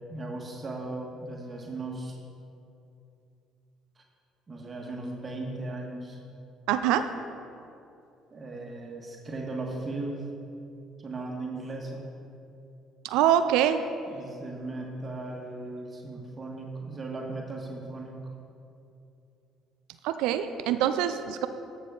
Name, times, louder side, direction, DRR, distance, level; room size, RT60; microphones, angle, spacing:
voice 1, 0.1-2.2 4.0-4.1 4.5-6.2 8.3-10.2 11.0-12.1 14.1-18.1, right 2 dB, 35° right, 0 dB, 1.6 m, -37 dB
voice 2, 6.7-7.0 13.0-13.8 20.0-21.5, right 10 dB, 75° right, 10 dB, 0.4 m, -24 dB
13.5 x 6.3 x 3.9 m, 2.6 s
hypercardioid pair, 55°, 0 cm